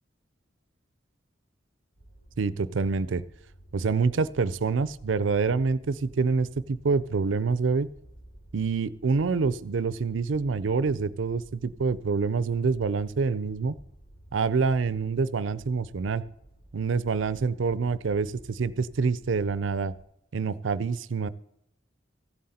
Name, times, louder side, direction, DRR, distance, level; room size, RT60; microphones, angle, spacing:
sound 1, 2.0-20.0, right 1 dB, 65° left, 4.9 m, -53 dB
voice 1, 2.4-3.2 3.7-7.9 8.5-13.7 14.3-16.2 16.7-19.9 20.3-21.3, right 4 dB, 80° right, 17 dB, 0.5 m, -26 dB
15.0 x 7.6 x 4.2 m, 0.78 s
head